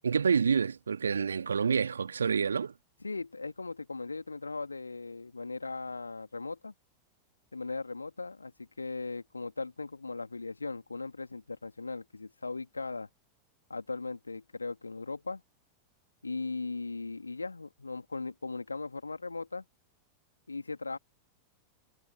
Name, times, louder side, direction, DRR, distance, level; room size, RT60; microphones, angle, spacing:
voice 1, 0.0-2.7, right 6 dB, 70° right, 1.8 m, -28 dB
voice 2, 3.0-6.7 7.5-13.1 13.7-15.4 16.2-19.6 20.5-21.0, left 3 dB, 80° left, 2.8 m, -38 dB
figure-of-eight pair, 90°, 0 cm